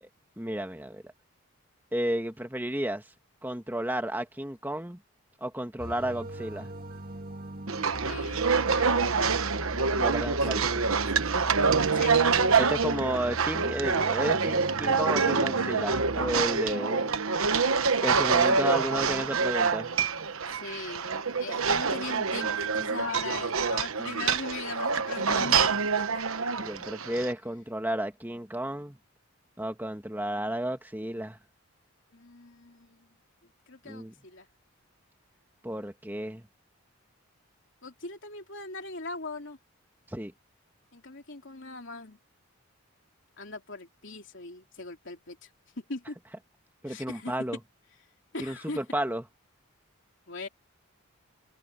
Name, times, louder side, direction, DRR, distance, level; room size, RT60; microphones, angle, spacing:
voice 1, 0.4-1.1 1.9-3.0 3.4-5.0 5.4-6.7 9.9-11.0 12.6-17.2 18.0-19.9 26.6-29.0 29.6-31.4 33.9-34.1 35.6-36.5 40.1-40.3 46.8-47.6 48.4-49.2, right 1 dB, 10° right, 1.8 m, -32 dB
sound 1, 5.8-16.4, right 1 dB, 40° right, 1.9 m, -40 dB
sound 2, 7.7-27.3, right 5 dB, 70° right, 1.1 m, -26 dB
voice 2, 8.0-9.0 11.8-12.3 20.5-21.1 21.4-26.2 32.1-33.1 33.7-34.5 37.8-39.6 40.9-42.2 43.4-45.5 45.8-46.2 46.9-47.4 48.3-48.8 50.3-50.5, left 3 dB, 55° left, 3.4 m, -40 dB
head